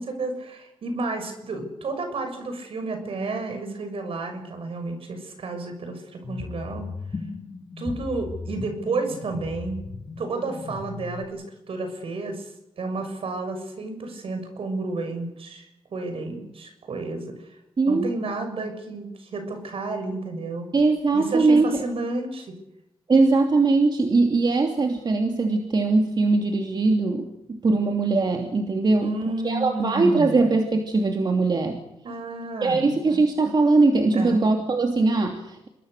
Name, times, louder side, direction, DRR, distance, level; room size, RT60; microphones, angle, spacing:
voice 1, 0.0-6.9 7.8-9.8 10.2-17.6 17.9-20.7 21.1-22.6 29.0-30.4 32.0-33.2 34.1-34.4, right 3 dB, 70° right, 6 dB, 6.5 m, -31 dB
sound 1, 6.2-11.2, left 4 dB, 40° left, 3.1 m, -37 dB
voice 2, 17.8-18.1 20.7-21.7 23.1-29.1 29.4-31.8 32.6-35.7, right 3 dB, 45° right, 3 dB, 2.8 m, -21 dB
27.5 x 21.0 x 6.7 m, 0.87 s
cardioid pair, 75°, 10 cm